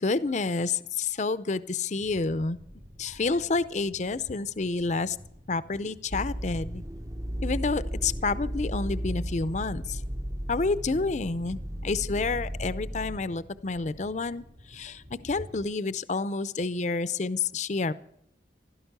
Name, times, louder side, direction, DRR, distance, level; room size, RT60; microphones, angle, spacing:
voice 1, 0.0-2.6 3.0-5.2 5.5-6.8 7.4-10.0 10.5-14.4 14.7-17.9, left 3 dB, 40° left, 15 dB, 0.5 m, -29 dB
sound 1, 2.0-15.7, equal, 60° right, 3.0 m, -50 dB
sound 2, 6.1-13.2, equal, 20° right, 0.6 m, -34 dB
16.0 x 12.5 x 6.7 m, 0.76 s
head